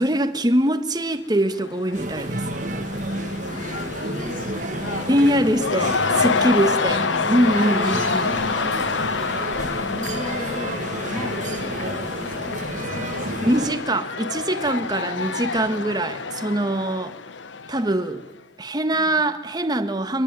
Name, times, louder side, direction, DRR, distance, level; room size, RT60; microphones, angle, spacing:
voice 1, 0.0-2.5 5.1-5.9 6.2-8.4 13.4-17.1 17.7-18.2 18.6-20.2, right 1 dB, 20° right, 1.6 m, -22 dB
Cheering / Crowd, 1.4-18.2, left 5 dB, 90° left, 1.0 m, -28 dB
sound 1, 1.9-13.7, right 2 dB, 45° right, 1.7 m, -30 dB
voice 2, 3.5-5.1 5.8-6.8 8.0-9.1 9.5-13.5 14.8-15.6 18.9-19.1, left 2 dB, 30° left, 7.0 m, -38 dB
25.0 x 24.0 x 9.1 m
head